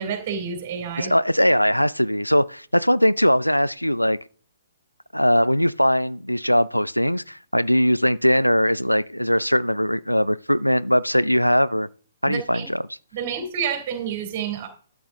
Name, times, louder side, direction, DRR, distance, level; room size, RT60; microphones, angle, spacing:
voice 1, 0.0-1.1 12.2-12.6 13.1-14.7, right 7 dB, 35° right, 2.9 m, -29 dB
voice 2, 1.0-4.2 5.1-11.9 12.2-12.8, equal, 90° left, 0.4 m, -20 dB
12.0 x 7.0 x 3.7 m
figure-of-eight pair, 125°, 0 cm